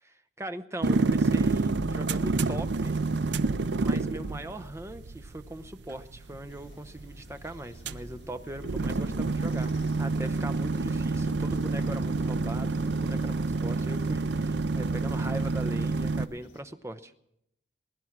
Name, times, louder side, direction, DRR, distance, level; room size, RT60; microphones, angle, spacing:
voice 1, 0.4-3.0 3.7-17.1, right 1 dB, 15° right, 9 dB, 0.7 m, -40 dB
sound 1, 0.8-16.3, right 3 dB, 65° right, 0.5 m, -28 dB
sound 2, 6.5-16.6, equal, 70° left, 1.7 m, -50 dB
20.5 x 11.0 x 5.9 m, 0.79 s
head